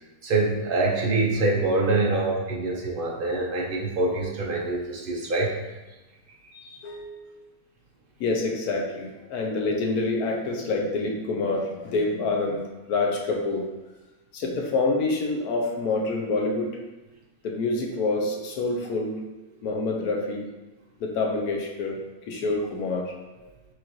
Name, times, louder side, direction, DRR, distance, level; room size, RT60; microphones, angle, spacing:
voice 1, 0.2-5.6, right 2 dB, 55° right, -2 dB, 0.6 m, -25 dB
voice 2, 6.5-7.5 8.2-12.6 12.9-13.7 14.3-16.7 17.4-19.2 19.6-20.4 21.0-22.0 22.3-23.1, left 3 dB, 75° left, 0 dB, 1.1 m, -27 dB
6.2 x 2.4 x 3.0 m, 1.1 s
omnidirectional pair, 1.7 m